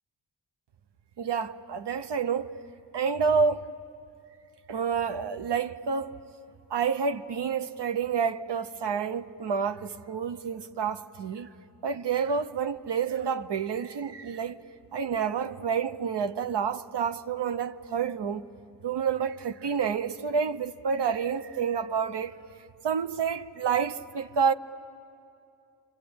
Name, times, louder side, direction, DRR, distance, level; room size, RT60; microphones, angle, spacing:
voice 1, 1.2-2.5 2.9-3.7 4.7-6.2 6.7-11.5 11.8-14.6 14.9-18.4 18.8-22.4 22.8-24.5, right 6 dB, 65° right, 0.9 m, -29 dB
26.5 x 24.5 x 8.7 m
supercardioid pair, 45°, 45 cm